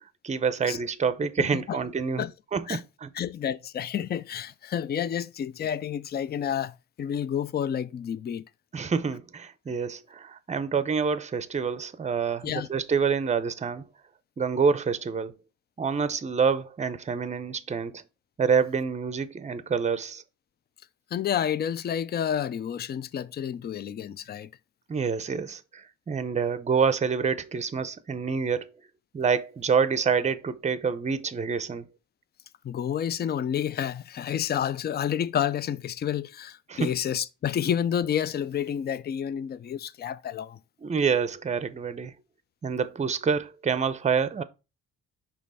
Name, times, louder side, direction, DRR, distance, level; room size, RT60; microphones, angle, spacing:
voice 1, 0.2-2.3 2.5-3.1 8.7-13.8 14.4-15.3 15.8-18.0 18.4-20.2 24.9-28.7 29.1-31.9 36.7-36.9 40.8-42.1 42.6-44.4, right 6 dB, 25° right, 0.6 m, -27 dB
voice 2, 1.4-1.8 2.2-2.3 2.7-2.8 3.1-8.4 12.4-12.7 21.1-24.5 32.6-40.6, left 9 dB, 35° left, 0.4 m, -30 dB
5.3 x 3.4 x 5.4 m
cardioid pair, 90°, 30 cm